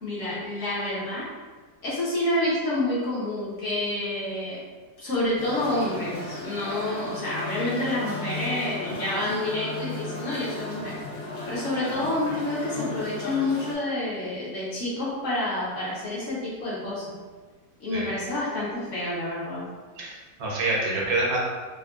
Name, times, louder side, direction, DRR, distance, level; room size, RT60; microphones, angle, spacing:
voice 1, 0.0-1.2 1.8-4.6 5.0-10.9 11.5-17.0 17.8-19.6, left 1 dB, 55° left, -7 dB, 0.9 m, -28 dB
sound 1, 5.4-13.8, left 2 dB, 75° left, 1.3 m, -35 dB
voice 2, 20.0-21.4, right 2 dB, 65° right, -4 dB, 1.1 m, -27 dB
3.6 x 2.1 x 2.3 m, 1.4 s
omnidirectional pair, 1.8 m